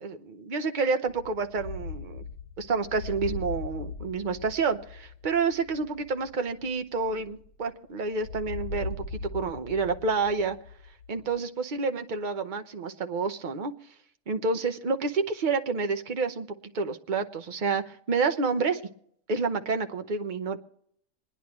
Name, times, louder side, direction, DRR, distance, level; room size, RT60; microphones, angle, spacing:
voice 1, 0.0-2.2 2.6-9.0 9.3-10.6 11.1-13.7 14.3-16.5 16.7-18.8 19.3-20.6, right 4 dB, 40° right, 7 dB, 0.9 m, -29 dB
sound 1, 1.1-7.7 8.2-11.4, left 3 dB, 70° left, 1.4 m, -39 dB
27.5 x 10.0 x 3.0 m, 0.68 s
omnidirectional pair, 1.4 m